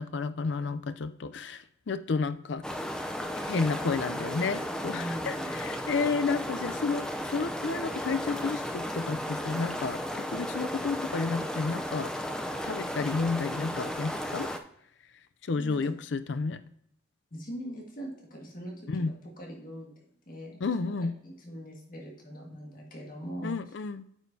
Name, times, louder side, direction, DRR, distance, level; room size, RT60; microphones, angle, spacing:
voice 1, 0.0-2.6 3.4-12.1 12.6-14.5 15.4-16.6 18.9-19.2 20.6-21.1 23.4-24.1, left 4 dB, 60° left, 12 dB, 0.5 m, -31 dB
sound 1, 2.6-14.6, equal, 5° left, 0.5 m, -34 dB
voice 2, 4.9-5.7 15.6-15.9 17.3-20.6 21.2-23.6, equal, 45° left, -1 dB, 1.8 m, -41 dB
8.9 x 6.4 x 2.7 m, 0.72 s
head